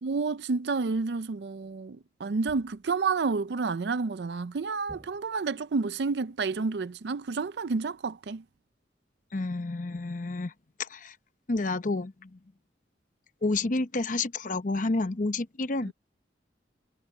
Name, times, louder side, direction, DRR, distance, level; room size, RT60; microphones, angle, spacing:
voice 1, 0.0-8.4 15.9-16.0, right 4 dB, 65° right, 0.5 m, -30 dB
sound 1, 2.5-3.1 4.9-5.7, equal, 10° left, 2.7 m, -53 dB
voice 2, 9.3-10.5 10.8-11.2 11.5-12.4 13.4-15.9, left 2 dB, 45° left, 0.8 m, -30 dB
head